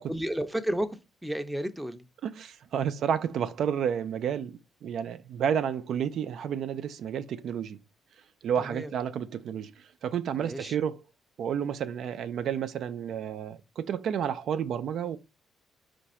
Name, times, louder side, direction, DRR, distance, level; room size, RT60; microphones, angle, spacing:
voice 1, 0.1-2.1 8.6-8.9 10.4-10.8, right 1 dB, 5° right, 0.6 m, -32 dB
voice 2, 2.2-7.8 8.4-11.0 11.4-15.2, right 8 dB, 70° right, 0.4 m, -31 dB
4.7 x 2.6 x 4.2 m
cardioid pair, 90°, 0 cm